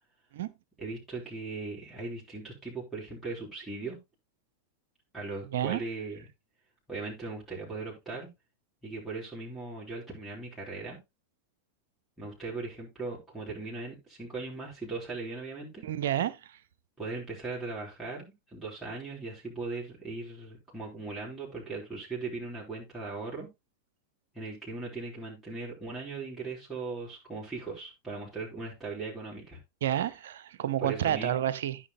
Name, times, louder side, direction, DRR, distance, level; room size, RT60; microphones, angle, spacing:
voice 1, 0.8-4.0 5.1-6.2 6.9-8.3 8.8-11.0 12.2-15.9 17.0-23.5 24.3-29.6 30.8-31.4, right 3 dB, 5° right, 3.9 m, -38 dB
voice 2, 15.8-16.4 29.8-31.8, right 11 dB, 60° right, 0.8 m, -29 dB
14.0 x 6.1 x 3.0 m
figure-of-eight pair, 90°, 0 cm